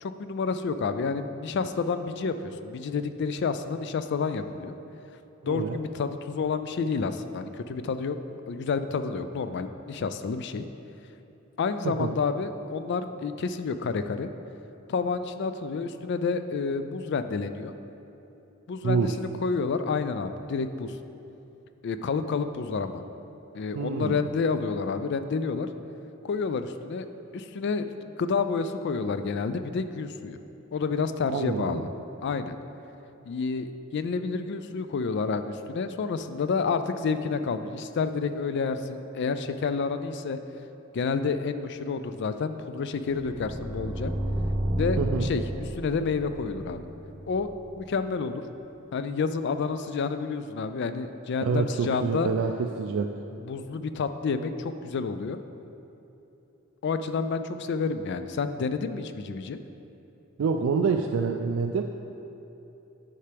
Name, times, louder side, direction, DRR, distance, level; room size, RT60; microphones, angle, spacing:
voice 1, 0.0-4.8 5.4-8.2 8.5-10.7 11.6-14.3 14.9-17.7 18.7-21.0 21.8-23.0 23.5-25.7 26.2-27.1 27.3-27.9 28.2-30.4 30.7-31.9 32.2-32.6 33.3-40.4 40.9-44.1 44.8-45.4 45.8-46.8 47.3-47.5 47.7-48.4 48.9-52.3 53.4-55.4 56.8-59.6, left 5 dB, 55° left, 10 dB, 0.3 m, -29 dB
voice 2, 5.4-5.8 11.8-12.2 18.8-19.2 23.7-24.3 31.3-31.9 45.0-45.3 51.4-53.1 60.4-61.8, right 5 dB, 80° right, 3 dB, 0.3 m, -27 dB
sound 1, 43.0-48.0, right 1 dB, 15° right, 0.8 m, -32 dB
9.8 x 5.7 x 3.4 m, 3.0 s
head